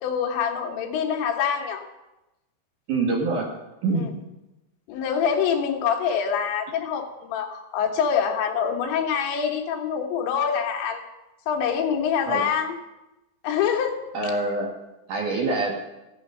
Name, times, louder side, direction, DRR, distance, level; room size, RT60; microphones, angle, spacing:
voice 1, 0.0-1.8 4.0-4.1 4.9-11.0 11.5-12.8 13.4-14.0, left 7 dB, 80° left, 2 dB, 3.6 m, -25 dB
voice 2, 2.9-3.5 3.8-4.1 12.3-12.4 14.1-14.7 15.1-15.8, right 3 dB, 55° right, -1 dB, 2.6 m, -25 dB
14.5 x 10.0 x 5.6 m, 0.98 s
omnidirectional pair, 5.3 m